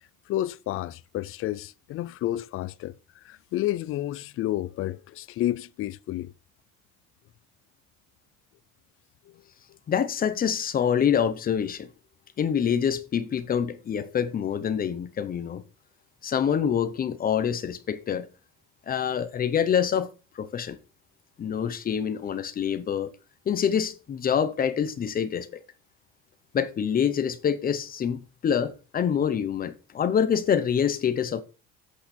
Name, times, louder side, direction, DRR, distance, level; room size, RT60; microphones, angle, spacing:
voice 1, 0.3-6.3 9.3-9.4, left 14 dB, 40° left, 0.5 m, -31 dB
voice 2, 9.9-11.9 12.4-15.6 16.2-18.3 18.9-20.8 21.4-23.1 23.5-25.5 26.5-31.4, left 8 dB, 25° left, 0.9 m, -26 dB
12.0 x 8.4 x 4.4 m
cardioid pair, 170°, 32 cm